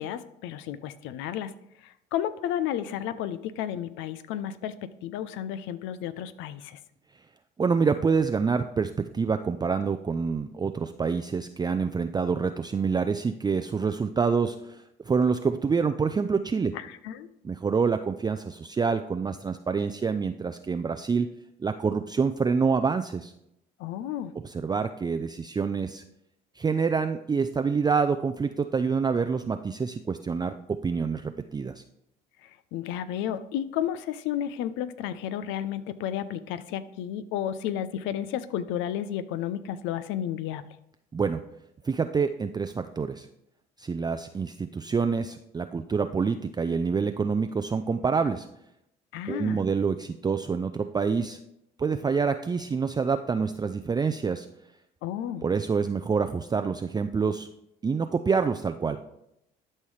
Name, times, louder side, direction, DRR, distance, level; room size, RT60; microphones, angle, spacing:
voice 1, 0.0-1.5 1.8-6.8 16.7-17.3 23.8-24.3 32.4-40.6 49.1-49.6 55.0-55.4, left 10 dB, 75° left, 14 dB, 0.6 m, -32 dB
voice 2, 7.6-16.7 17.4-21.3 21.6-23.3 24.4-26.0 26.6-31.8 41.1-41.4 41.8-43.3 43.8-48.5 49.3-51.4 51.8-54.5 55.4-57.5 57.8-59.0, right 5 dB, 20° right, 7 dB, 0.4 m, -27 dB
12.0 x 5.5 x 3.2 m, 0.79 s
hypercardioid pair, 65°, 20 cm